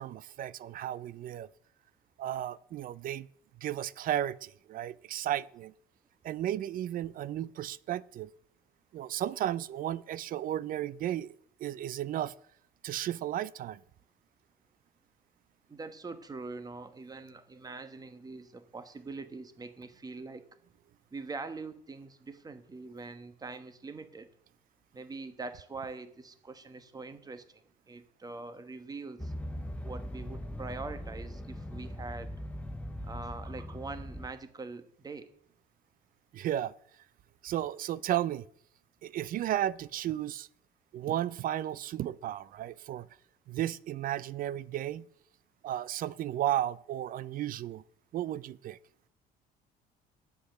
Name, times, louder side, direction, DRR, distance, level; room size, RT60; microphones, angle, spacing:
voice 1, 0.0-1.5 2.2-3.3 3.6-5.7 6.2-8.3 8.9-12.3 12.8-13.8 36.3-36.7 37.4-38.5 39.0-40.5 40.9-43.1 43.5-45.1 45.6-47.8 48.1-48.8, right 12 dB, 55° right, 0.4 m, -34 dB
voice 2, 15.7-20.5 21.1-24.3 24.9-27.6 27.9-29.3 29.8-32.3 33.0-35.3, right 3 dB, 20° right, 1.2 m, -43 dB
sound 1, 29.2-34.3, equal, 10° left, 0.8 m, -40 dB
9.8 x 8.1 x 6.4 m
cardioid pair, 110°, 17 cm